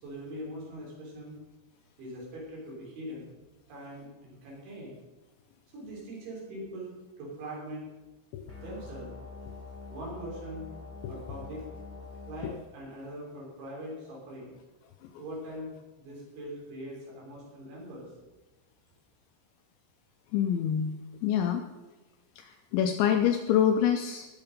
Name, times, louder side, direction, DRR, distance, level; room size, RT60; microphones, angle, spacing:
voice 1, 0.0-1.3 2.0-3.3 3.7-5.0 5.7-7.9 8.6-9.1 9.9-10.7 11.1-11.7 12.3-14.5 15.2-18.1, right 1 dB, 65° right, -3 dB, 6.1 m, -42 dB
sound 1, 8.5-12.5, left 4 dB, 20° left, 0.3 m, -45 dB
voice 2, 20.3-20.9 21.2-21.6 22.4-24.3, left 9 dB, 80° left, 5 dB, 2.7 m, -26 dB
19.0 x 6.9 x 5.2 m, 1.1 s
omnidirectional pair, 5.8 m